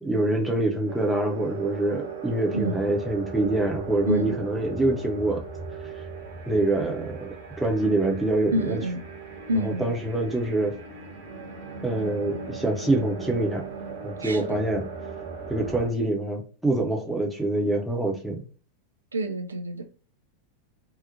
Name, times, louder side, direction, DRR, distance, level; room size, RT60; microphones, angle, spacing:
voice 1, 0.0-5.4 6.5-8.8 9.6-10.8 11.8-13.6 14.0-14.8 15.5-18.4, right 2 dB, 5° right, 0.5 m, -25 dB
sound 1, 0.9-15.9, right 5 dB, 60° right, 0.7 m, -38 dB
voice 2, 4.1-4.4 8.5-9.0 9.5-9.9 14.2-14.6 19.1-19.8, right 1 dB, 75° right, 0.4 m, -28 dB
2.7 x 2.0 x 2.5 m
figure-of-eight pair, 90°, 0 cm